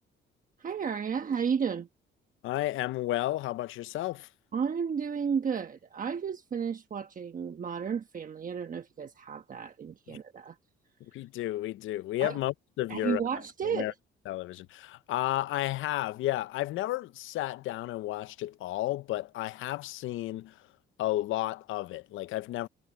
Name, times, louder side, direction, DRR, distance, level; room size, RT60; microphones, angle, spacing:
voice 1, 0.6-1.9 4.5-10.6 12.2-12.4 12.9-13.9, right 7 dB, 45° right, 1.2 m, -32 dB
voice 2, 2.4-4.3 10.1-10.2 11.1-13.2 13.6-13.9 14.3-20.6 21.0-22.7, left 15 dB, 85° left, 0.6 m, -32 dB
cardioid pair, 90°, 20 cm